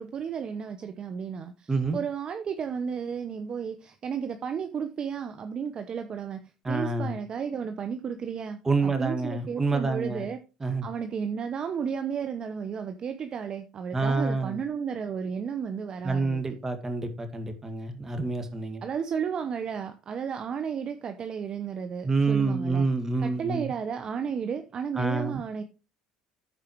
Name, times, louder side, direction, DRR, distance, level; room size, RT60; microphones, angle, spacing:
voice 1, 0.0-10.4 10.8-16.4 18.8-22.9 23.2-25.6, right 7 dB, 40° right, 0.9 m, -33 dB
voice 2, 6.6-7.2 8.6-10.3 10.6-10.9 13.9-14.6 16.0-18.8 22.0-23.7 25.0-25.4, right 3 dB, 20° right, 2.0 m, -27 dB
14.5 x 4.8 x 3.0 m
supercardioid pair, 90°, 2 cm